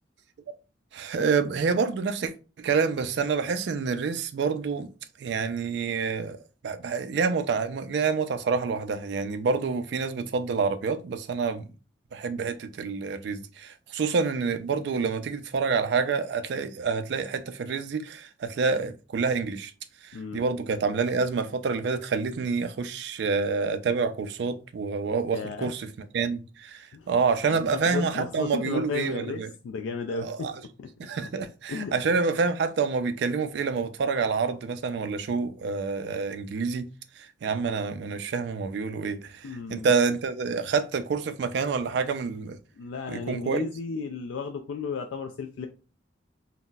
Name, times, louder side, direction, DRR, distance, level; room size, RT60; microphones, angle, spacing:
voice 1, 0.9-2.3 2.6-4.9 5.2-6.4 6.6-11.7 12.1-19.7 20.0-25.9 26.1-29.5 30.2-30.5 31.0-36.9 37.2-42.6 43.1-43.7, right 5 dB, 60° right, 0.3 m, -27 dB
voice 2, 20.1-20.4 25.3-25.7 26.9-27.1 27.5-30.9 31.7-31.9 39.4-39.9 42.8-45.7, left 5 dB, 80° left, 0.3 m, -34 dB
3.8 x 2.0 x 2.2 m
head